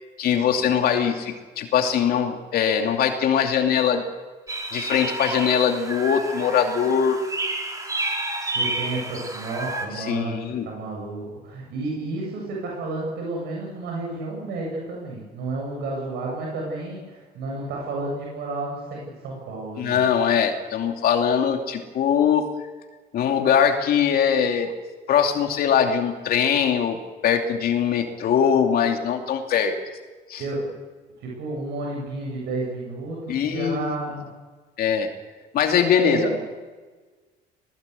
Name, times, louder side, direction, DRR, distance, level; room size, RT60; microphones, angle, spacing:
voice 1, 0.2-4.0 4.7-7.2 10.0-10.7 19.8-22.4 23.1-24.7 25.1-27.0 27.2-29.7 30.3-30.4 33.3-33.9 34.8-35.1 35.5-36.3, left 8 dB, 65° left, 4 dB, 2.7 m, -21 dB
sound 1, 4.5-9.9, right 2 dB, 20° right, 4.7 m, -30 dB
voice 2, 8.5-20.0 30.4-30.7 31.2-34.3 36.0-36.4, right 2 dB, 80° right, -2 dB, 7.8 m, -31 dB
20.0 x 19.0 x 8.4 m, 1.3 s
cardioid pair, 110°, 17 cm